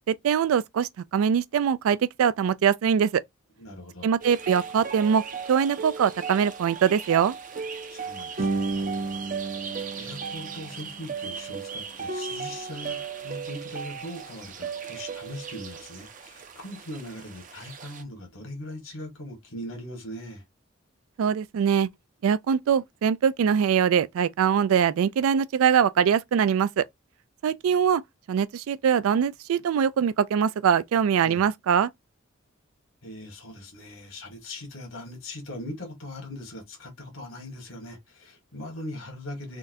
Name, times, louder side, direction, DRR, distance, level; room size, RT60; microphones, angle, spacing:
voice 1, 0.1-3.2 4.0-7.3 21.2-21.9 22.2-26.9 27.4-28.0 28.3-31.9, right 7 dB, 90° right, 0.3 m, -23 dB
voice 2, 3.6-4.1 7.8-8.7 9.9-20.4 31.2-31.5 33.0-39.6, left 1 dB, 75° left, 1.4 m, -40 dB
sound 1, 4.2-18.0, right 4 dB, 40° right, 0.5 m, -35 dB
3.8 x 2.2 x 2.6 m
head